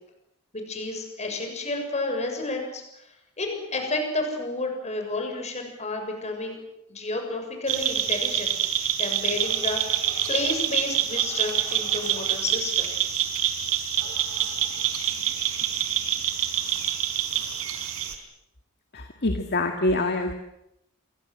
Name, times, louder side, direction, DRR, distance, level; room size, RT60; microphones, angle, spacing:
voice 1, 0.5-6.6 6.9-8.5 9.0-12.9, left 2 dB, 30° left, 4 dB, 7.0 m, -31 dB
sound 1, 7.7-18.2, right 10 dB, 70° right, 4.3 m, -26 dB
voice 2, 18.9-20.3, left 2 dB, 45° left, 5 dB, 2.1 m, -25 dB
28.5 x 23.5 x 7.7 m, 0.83 s
head